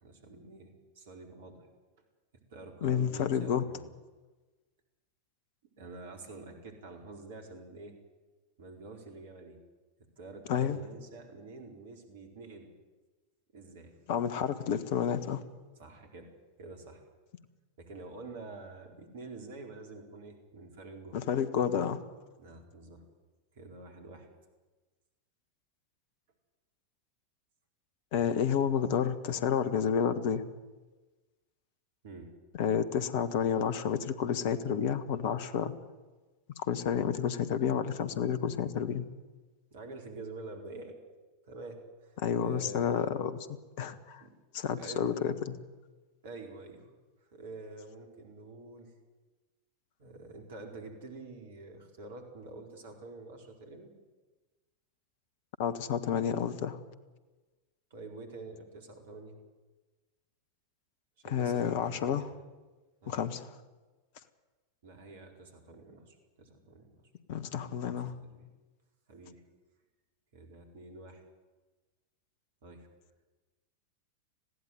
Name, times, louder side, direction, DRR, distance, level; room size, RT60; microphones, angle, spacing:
voice 1, 0.0-1.7 2.5-3.9 5.8-8.0 8.6-9.6 10.2-12.7 13.5-13.9 15.8-16.3 16.6-17.0 17.8-21.2 22.4-23.0 23.5-24.3 32.0-32.3 39.7-41.0 41.4-43.0 44.2-44.3 44.7-45.1 46.2-47.0 47.3-48.9 50.0-53.9 57.9-59.4 61.2-62.3 63.0-63.2 64.8-67.0 67.5-68.5 69.1-69.4 70.3-71.2 72.6-72.9, right 3 dB, 55° right, 3 dB, 4.4 m, -47 dB
voice 2, 2.8-3.6 10.5-10.8 14.1-15.4 21.1-22.0 28.1-30.4 32.6-35.7 36.6-39.0 42.2-44.2 44.5-45.6 55.6-56.8 61.3-62.3 63.1-63.5 67.3-68.1, left 8 dB, 50° left, 13 dB, 1.5 m, -30 dB
20.5 x 15.5 x 9.5 m, 1.2 s
figure-of-eight pair, 90°, 0 cm